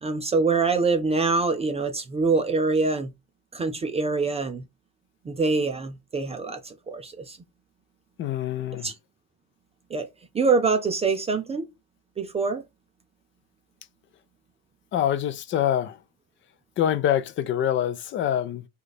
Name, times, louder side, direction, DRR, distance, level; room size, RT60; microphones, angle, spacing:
voice 1, 0.0-3.1 3.5-4.6 5.3-7.4 8.8-8.9 9.9-10.1 10.3-11.7 12.2-12.6, right 4 dB, 20° right, 0.5 m, -24 dB
voice 2, 8.2-8.9 14.9-16.0 16.8-18.7, left 10 dB, 35° left, 0.5 m, -25 dB
5.0 x 2.5 x 4.1 m
cardioid pair, 160°, 34 cm